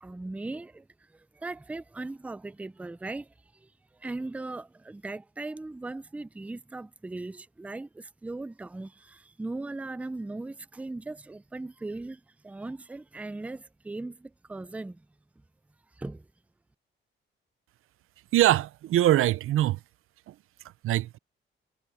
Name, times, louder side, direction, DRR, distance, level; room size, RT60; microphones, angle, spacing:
voice 1, 0.0-3.7 4.0-15.1 16.0-16.3, right 2 dB, 5° right, 0.4 m, -39 dB
voice 2, 18.3-19.8 20.3-20.4 20.8-21.2, right 14 dB, 80° right, 0.6 m, -23 dB
cardioid pair, 140°, 21 cm